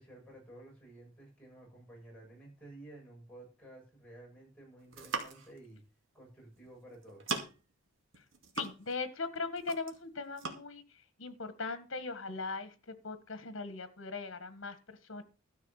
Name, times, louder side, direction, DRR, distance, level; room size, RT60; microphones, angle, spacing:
voice 1, 0.0-5.8 6.1-7.4, right 1 dB, 5° left, -3 dB, 7.7 m, -53 dB
sound 1, 4.8-5.6 6.6-6.8 7.0-7.7 8.1-9.1 9.4-10.0 10.4-10.6, right 4 dB, 75° right, 2.3 m, -39 dB
voice 2, 8.5-15.2, left 4 dB, 75° left, 12 dB, 1.5 m, -40 dB
13.0 x 6.6 x 6.5 m, 0.33 s
head